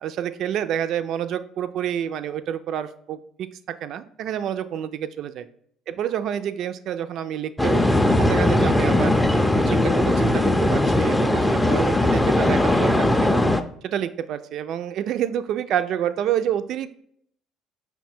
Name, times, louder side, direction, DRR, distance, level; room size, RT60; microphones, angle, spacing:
voice 1, 0.0-3.5 3.8-5.5 5.9-9.1 9.5-13.4 13.8-17.0, right 10 dB, 60° right, 11 dB, 0.3 m, -28 dB
sound 1, 7.6-13.6, left 1 dB, 10° left, 0.5 m, -19 dB
5.6 x 2.2 x 4.2 m, 0.66 s
hypercardioid pair, 55°, 0 cm